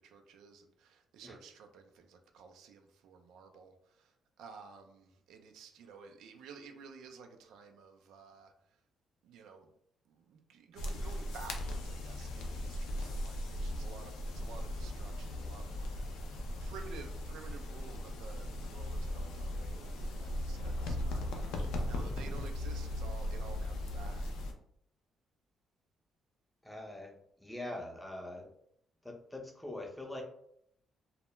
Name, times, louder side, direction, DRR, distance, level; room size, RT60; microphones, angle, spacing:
voice 1, 0.0-8.5 9.2-9.7 10.1-24.4, right 5 dB, 85° right, 5 dB, 0.4 m, -53 dB
sound 1, 10.8-24.5, left 1 dB, 85° left, 0.4 m, -38 dB
voice 2, 26.6-28.5 29.0-30.2, left 1 dB, 5° left, 2 dB, 0.6 m, -43 dB
2.2 x 2.0 x 2.9 m, 0.70 s
cardioid pair, 80°, 0 cm